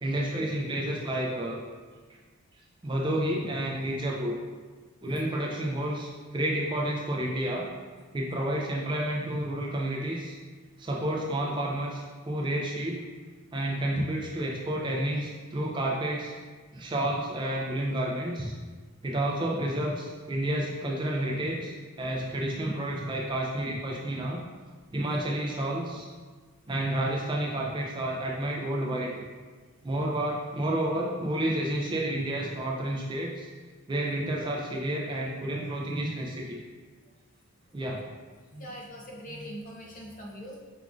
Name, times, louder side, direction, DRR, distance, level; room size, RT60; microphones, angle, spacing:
voice 1, 0.0-1.6 2.8-4.4 5.0-7.7 8.1-10.4 10.8-13.0 13.5-16.3 16.7-18.5 19.0-24.4 24.9-26.1 26.7-29.2 29.8-33.5 33.9-36.6 37.7-38.0, right 1 dB, 20° right, -2 dB, 0.4 m, -30 dB
voice 2, 38.5-40.6, equal, 35° left, -1 dB, 0.6 m, -42 dB
4.7 x 2.4 x 3.7 m, 1.4 s
head